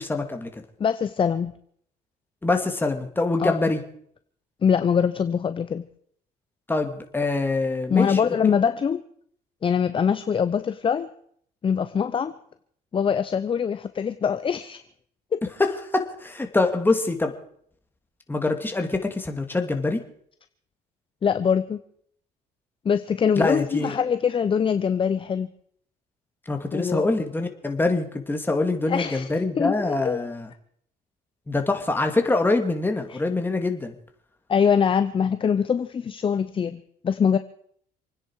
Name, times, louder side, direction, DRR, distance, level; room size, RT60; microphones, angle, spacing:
voice 1, 0.0-0.6 2.4-3.8 6.7-8.2 15.6-17.3 18.3-20.0 23.4-23.9 26.5-30.5 31.5-33.9, left 2 dB, 10° left, 5 dB, 2.3 m, -24 dB
voice 2, 0.8-1.5 3.4-3.6 4.6-5.9 7.9-9.0 9.6-11.1 11.6-12.3 12.9-14.8 15.3-15.4 21.2-21.8 22.8-25.5 26.7-27.1 28.9-29.3 29.6-30.2 33.1-33.2 34.5-37.4, left 7 dB, 30° left, 11 dB, 0.7 m, -23 dB
27.5 x 10.0 x 4.7 m, 0.65 s
cardioid pair, 110°, 17 cm